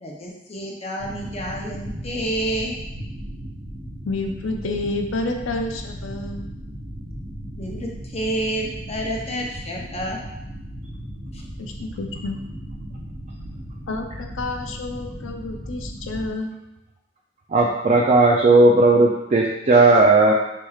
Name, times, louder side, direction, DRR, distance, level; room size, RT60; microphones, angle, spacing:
voice 1, 0.0-2.8 7.5-10.2, right 1 dB, 35° left, -1 dB, 0.6 m, -29 dB
sound 1, 1.0-16.3, equal, 60° right, 1.1 m, -36 dB
voice 2, 4.1-6.5 11.6-12.4 13.9-16.5, left 2 dB, 85° left, 4 dB, 0.6 m, -29 dB
voice 3, 17.5-20.3, right 2 dB, 35° right, -1 dB, 0.4 m, -15 dB
4.7 x 4.3 x 2.3 m, 0.89 s
head